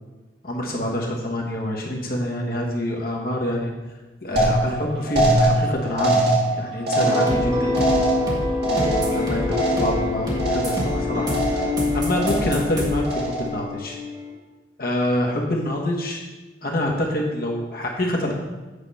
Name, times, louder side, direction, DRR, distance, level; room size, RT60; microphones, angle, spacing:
voice 1, 0.4-3.7 4.2-6.2 6.5-7.8 8.6-9.4 9.7-11.4 11.9-14.0 14.8-16.2 16.6-18.3, left 1 dB, 50° left, -1 dB, 1.3 m, -26 dB
sound 1, 4.4-10.1 10.4-11.0 11.3-11.8 12.2-12.7 13.0-13.6, right 2 dB, 60° right, 1.9 m, -23 dB
sound 2, 7.0-14.3, left 2 dB, 20° right, 1.5 m, -25 dB
8.3 x 4.8 x 5.5 m, 1.2 s
head